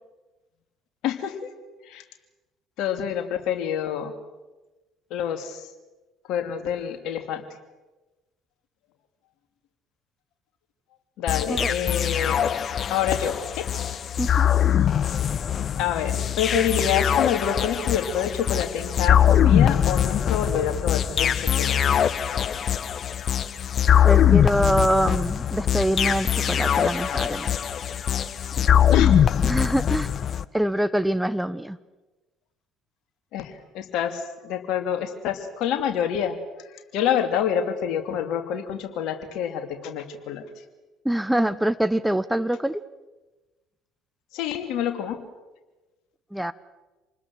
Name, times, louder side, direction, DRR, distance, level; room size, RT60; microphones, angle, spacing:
voice 1, 1.0-1.5 1.8-2.0 2.8-4.1 5.1-5.7 6.3-7.5 11.2-12.5 12.9-13.6 15.8-21.8 28.9-29.2 33.3-36.4 36.7-40.4 41.3-41.6 44.3-45.2, left 9 dB, 60° left, 7 dB, 2.7 m, -27 dB
sound 1, 11.3-30.5, left 9 dB, 45° left, 0.9 m, -22 dB
voice 2, 14.2-14.5 24.0-27.6 28.6-28.9 29.4-30.1 30.5-31.8 41.0-42.8 46.3-46.5, right 1 dB, 5° right, 14 dB, 0.9 m, -25 dB
27.5 x 20.5 x 7.7 m, 1.1 s
figure-of-eight pair, 55°, 0 cm